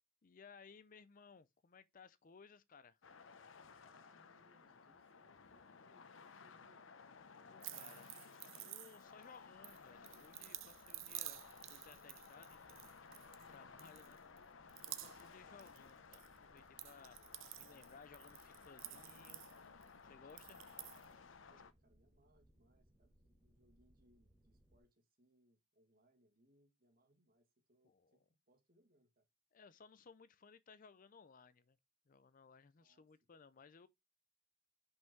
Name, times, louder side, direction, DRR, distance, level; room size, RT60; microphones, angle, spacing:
voice 1, 0.2-3.0 7.4-8.2 8.6-11.4 11.7-13.0 13.5-14.5 14.8-17.2 17.5-19.4 20.0-20.7 27.8-28.1 29.5-31.8 32.1-33.9, left 5 dB, 45° left, 0.5 m, -61 dB
sound 1, 3.0-21.7, left 5 dB, 75° left, 0.7 m, -58 dB
voice 2, 3.7-6.9 16.9-17.3 17.6-17.9 21.5-29.3 32.8-33.3, equal, 50° right, 2.1 m, -75 dB
sound 2, 7.6-9.2 9.6-13.5 13.8-14.4 14.7-15.3 15.6-16.3 16.6-19.9 20.3-21.0, right 15 dB, 85° right, 0.6 m, -51 dB
sound 3, 8.9-24.8, right 1 dB, 5° right, 1.8 m, -73 dB
5.6 x 5.3 x 4.6 m
head